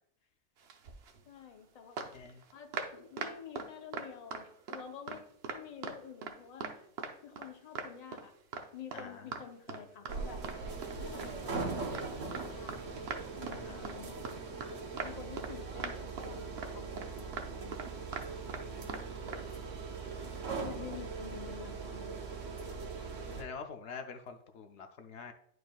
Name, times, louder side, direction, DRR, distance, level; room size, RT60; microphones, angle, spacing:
sound 1, 0.6-1.2 2.0-4.8 5.1-6.4 6.6-7.5 7.8-8.2 8.5-8.7 8.9-9.1 9.3-9.4 9.7-10.6 10.8-12.8 13.1-13.6 13.8-14.0 14.3-14.7 15.0-15.5 15.8-16.3 16.6-16.7 17.0-18.6 18.9-19.0 19.3-19.4, right 5 dB, 60° right, 1.0 m, -40 dB
voice 1, 1.3-2.0 2.5-5.2 5.5-6.7 7.2-8.3 8.7-10.4 11.0-12.8 13.4-14.2 15.0-18.2 20.6-22.2, left 7 dB, 40° left, 5 dB, 0.7 m, -49 dB
voice 2, 8.9-9.2 13.5-13.8 18.5-19.2 23.3-25.3, left 5 dB, 70° left, 6 dB, 0.9 m, -46 dB
sound 2, 10.1-23.4, right 4 dB, 90° right, 1.2 m, -40 dB
10.5 x 4.7 x 2.3 m, 0.70 s
omnidirectional pair, 1.2 m